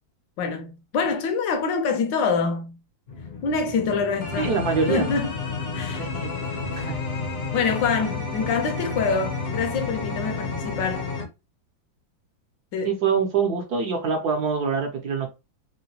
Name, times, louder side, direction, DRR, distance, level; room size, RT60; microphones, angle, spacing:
voice 1, 0.4-2.8 3.4-4.5 4.9-5.3 5.7-6.1 6.7-6.9 7.5-11.1 12.7-12.9, left 5 dB, 70° left, 1.3 m, -25 dB
sound 1, 3.1-11.3, left 4 dB, 50° left, 0.7 m, -31 dB
voice 2, 4.3-5.1 6.0-6.3 6.8-6.9 12.8-15.3, right 5 dB, 65° right, 1.1 m, -25 dB
3.7 x 2.2 x 2.7 m
omnidirectional pair, 2.2 m